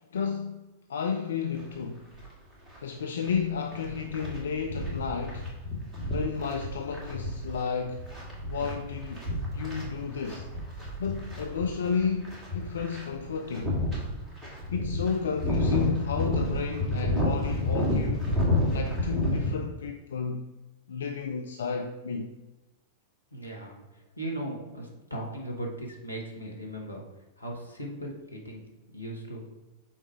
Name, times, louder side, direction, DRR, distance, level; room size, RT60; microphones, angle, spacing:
voice 1, 0.1-0.6 0.9-2.1 2.8-5.5 6.1-8.1 8.5-9.3 9.5-10.5 11.0-13.8 14.7-18.3 18.7-20.5 20.9-22.3, left 6 dB, 65° left, 0.4 m, -32 dB
sound 1, 1.6-1.7 2.2-2.3 2.7-19.5, left 1 dB, 15° right, 2.0 m, -30 dB
voice 2, 23.3-27.0 27.4-28.7 28.9-29.4, right 1 dB, 90° left, 1.2 m, -38 dB
5.7 x 4.2 x 4.5 m
figure-of-eight pair, 95°, 0 cm